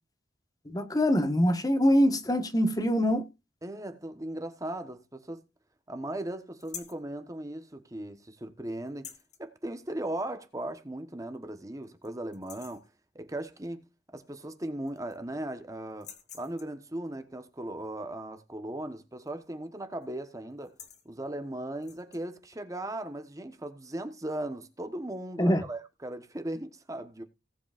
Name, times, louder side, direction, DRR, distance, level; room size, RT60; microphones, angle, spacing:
voice 1, 0.6-3.3 25.4-25.6, equal, 20° left, 1.3 m, -24 dB
voice 2, 3.6-5.4 5.9-9.1 9.4-12.8 13.1-13.9 14.1-20.7 21.0-27.2, right 1 dB, 20° right, 1.1 m, -38 dB
sound 1, 6.6-7.1 8.9-9.4 10.8-10.9 11.3-11.4 11.8-12.1 12.3-12.9 14.3-14.4 14.6-15.3 15.9-16.8 19.2-19.5 19.8-20.1 20.5-21.1 21.8-22.2, left 8 dB, 40° left, 1.8 m, -47 dB
18.5 x 8.1 x 2.5 m
head